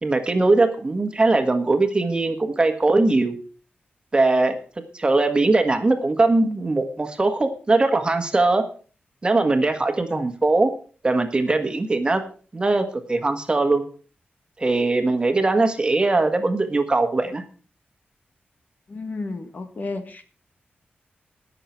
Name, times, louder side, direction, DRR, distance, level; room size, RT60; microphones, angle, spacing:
voice 1, 0.0-3.4 4.1-4.6 4.9-8.6 9.2-10.7 11.0-12.2 12.5-13.8 14.6-17.4, right 2 dB, 25° right, 6 dB, 1.7 m, -20 dB
voice 2, 18.9-20.2, left 3 dB, 45° left, 7 dB, 1.5 m, -32 dB
19.0 x 6.8 x 4.5 m, 0.39 s
wide cardioid pair, 135°, 4 cm